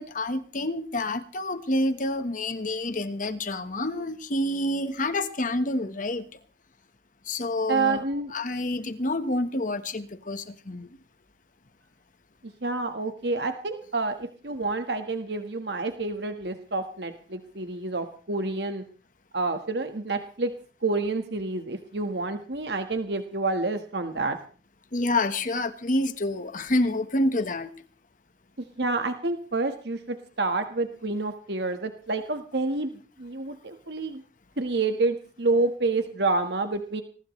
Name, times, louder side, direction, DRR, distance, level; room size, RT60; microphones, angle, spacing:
voice 1, 0.0-6.2 7.2-8.0 8.3-10.9 24.9-27.7, left 1 dB, 50° left, 10 dB, 1.4 m, -28 dB
voice 2, 7.7-8.3 12.4-18.8 19.3-20.5 20.8-24.4 28.6-32.9 33.2-34.2 34.6-37.0, right 3 dB, 70° right, 7 dB, 1.6 m, -28 dB
22.0 x 19.5 x 3.2 m, 0.40 s
head